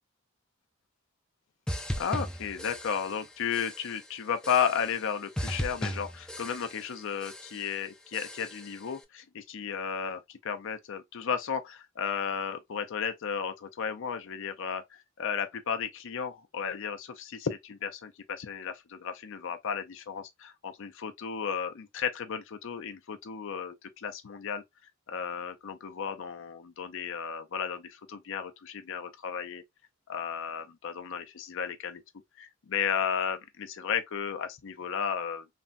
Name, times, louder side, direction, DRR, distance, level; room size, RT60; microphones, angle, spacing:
sound 1, 1.7-3.3 3.5-4.0 4.4-5.1 5.4-6.9 7.2-7.7 8.1-8.8, equal, 5° left, 0.3 m, -37 dB
voice 1, 2.0-14.8 15.2-24.6 25.1-29.6 30.1-32.0 32.4-35.5, left 7 dB, 65° left, 0.5 m, -34 dB
3.3 x 2.1 x 2.5 m
head